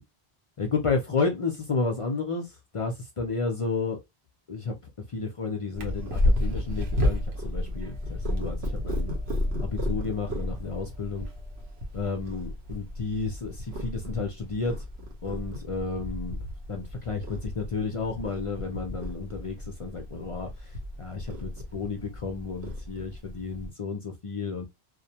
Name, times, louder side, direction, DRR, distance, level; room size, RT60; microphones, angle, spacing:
voice 1, 0.6-4.0 4.5-4.8 5.1-9.1 9.6-11.3 11.9-14.7 15.2-16.4 16.7-24.7, left 4 dB, 50° left, 0.4 m, -32 dB
Purr, 5.7-23.7, left 1 dB, 90° right, 1.0 m, -32 dB
2.4 x 2.1 x 2.7 m
omnidirectional pair, 1.0 m